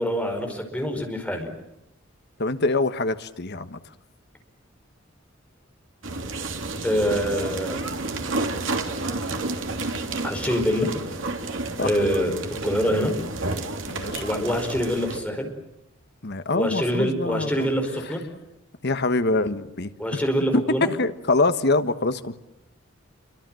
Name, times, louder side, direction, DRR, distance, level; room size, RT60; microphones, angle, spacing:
voice 1, 0.0-1.5 6.8-7.8 10.2-10.9 11.8-12.3 12.6-13.1 14.2-15.5 16.5-18.2 20.0-20.9, equal, 5° left, 3 dB, 5.1 m, -25 dB
voice 2, 2.4-3.8 11.8-11.9 12.9-13.1 13.9-14.3 16.2-17.7 18.1-18.2 18.8-20.2 20.5-22.4, left 2 dB, 55° left, 11 dB, 1.3 m, -25 dB
sound 1, 6.0-15.2, right 2 dB, 70° right, 3.2 m, -30 dB
28.5 x 24.0 x 7.8 m, 0.85 s
head